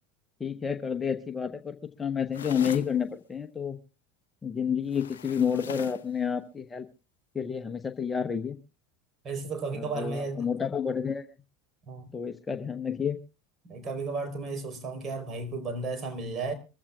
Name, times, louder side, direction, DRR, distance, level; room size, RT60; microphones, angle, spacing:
voice 1, 0.4-3.8 4.4-6.9 7.3-8.6 9.7-11.2 12.1-13.2, left 7 dB, 20° left, 1.0 m, -30 dB
sound 1, 2.3-2.9 4.9-6.1, left 8 dB, 75° left, 0.7 m, -40 dB
voice 2, 9.2-10.4 11.9-12.1 13.6-16.5, right 3 dB, 35° right, 4.3 m, -34 dB
24.0 x 15.0 x 2.4 m
figure-of-eight pair, 80°, 0 cm